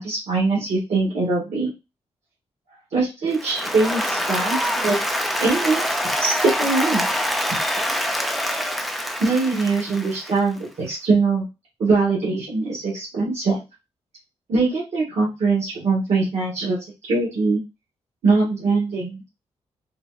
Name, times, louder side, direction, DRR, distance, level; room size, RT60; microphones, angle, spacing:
voice 1, 0.0-1.7 2.9-5.0 5.4-7.0 9.2-11.4 11.8-13.6 14.5-16.8 17.1-17.6 18.2-19.2, right 3 dB, 75° right, -7 dB, 1.4 m, -22 dB
Applause, 3.3-10.5, equal, ahead, 0.4 m, -25 dB
3.8 x 2.3 x 2.3 m, 0.25 s
wide cardioid pair, 140°, 12 cm